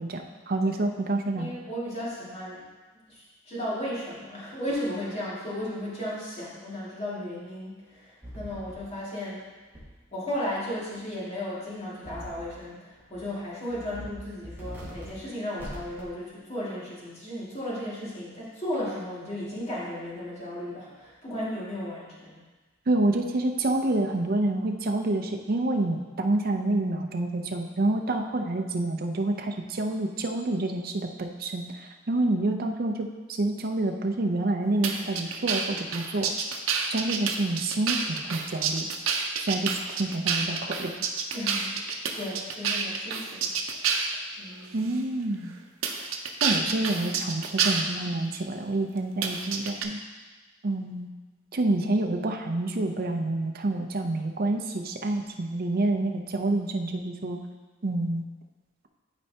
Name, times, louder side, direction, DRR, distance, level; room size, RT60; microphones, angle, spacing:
voice 1, 0.0-1.5 22.9-36.3 36.9-38.9 39.4-40.9 44.7-45.5 46.4-50.0 50.6-51.1 51.5-57.4 57.8-58.2, right 2 dB, 50° right, 4 dB, 0.6 m, -28 dB
voice 2, 1.3-2.6 3.1-9.4 10.1-22.4 41.3-41.8 42.1-43.5 44.4-44.9, left 1 dB, 35° left, -7 dB, 2.2 m, -35 dB
sound 1, 8.2-8.7 9.7-9.8 12.0-12.5 12.9-13.2 13.7-14.1 14.4-15.1 15.6-16.0, right 1 dB, 10° right, 2.0 m, -41 dB
sound 2, 34.8-44.2 44.8-45.0 45.8-47.8 49.2-49.8, right 6 dB, 90° right, 0.7 m, -28 dB
12.0 x 4.3 x 2.8 m, 1.3 s
head